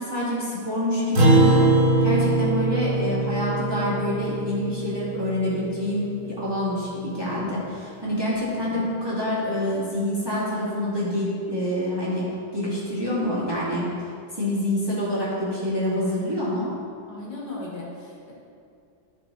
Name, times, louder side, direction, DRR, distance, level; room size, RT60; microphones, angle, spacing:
voice 1, 0.0-1.7 2.0-12.3 12.5-13.9 14.3-16.7, left 1 dB, 10° right, -9 dB, 2.3 m, -26 dB
Acoustic guitar, 1.2-5.8, right 2 dB, 90° right, 2.4 m, -21 dB
voice 2, 17.1-18.3, left 2 dB, 75° left, -6 dB, 2.8 m, -37 dB
13.5 x 5.2 x 4.1 m, 2.5 s
omnidirectional pair, 2.3 m